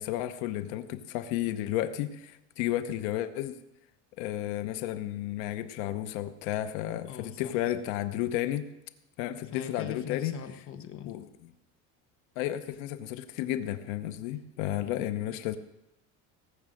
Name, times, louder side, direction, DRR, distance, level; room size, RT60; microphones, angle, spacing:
voice 1, 0.0-3.6 4.2-8.7 9.2-10.3 11.1-11.3 12.4-15.6, left 13 dB, 75° left, 11 dB, 1.0 m, -32 dB
voice 2, 7.0-7.6 9.5-11.1, left 9 dB, 35° left, 8 dB, 1.2 m, -41 dB
18.0 x 6.2 x 7.7 m, 0.87 s
cardioid pair, 165°, 37 cm